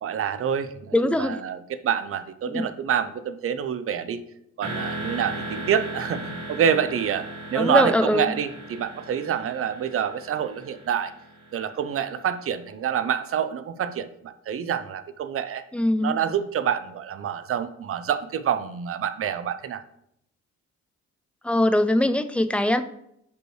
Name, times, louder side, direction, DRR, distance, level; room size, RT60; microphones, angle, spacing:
voice 1, 0.0-4.2 4.6-7.2 7.5-11.1 11.5-15.6 16.0-19.8, right 8 dB, 45° right, 11 dB, 0.6 m, -27 dB
voice 2, 0.9-1.4 2.5-2.6 7.5-8.3 15.7-16.2 21.4-22.8, left 1 dB, 5° left, 10 dB, 0.4 m, -22 dB
sound 1, 4.6-12.4, right 1 dB, 75° right, 2.1 m, -37 dB
6.1 x 5.3 x 3.2 m, 0.76 s
cardioid pair, 90°, 30 cm